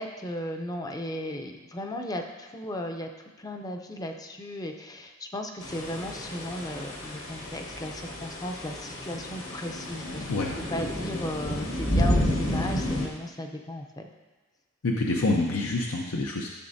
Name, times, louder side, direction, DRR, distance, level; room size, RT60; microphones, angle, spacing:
voice 1, 0.0-3.1 3.4-10.2 10.7-14.1, left 1 dB, 15° left, 4 dB, 0.5 m, -36 dB
sound 1, 5.6-13.1, left 1 dB, 65° left, 1.4 m, -30 dB
voice 2, 14.8-16.5, left 2 dB, 85° left, -1 dB, 0.7 m, -26 dB
12.0 x 6.8 x 2.7 m, 1.2 s
head